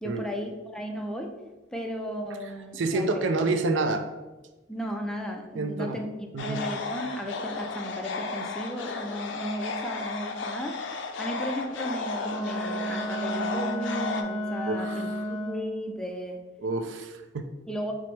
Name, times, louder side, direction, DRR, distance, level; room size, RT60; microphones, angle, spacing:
voice 1, 0.0-1.3 1.7-3.6 4.7-6.1 6.4-10.8 11.2-16.4 17.7-17.9, equal, 5° left, 2 dB, 0.3 m, -35 dB
voice 2, 2.7-4.0 5.5-6.0 6.3-6.6 14.7-15.0 16.6-17.5, right 3 dB, 75° right, 7 dB, 0.4 m, -28 dB
sound 1, 6.4-14.2, left 4 dB, 70° left, 0.4 m, -34 dB
Wind instrument woodwind instrument, 12.2-15.8, equal, 55° right, 0.9 m, -32 dB
4.6 x 2.0 x 4.4 m, 1.1 s
head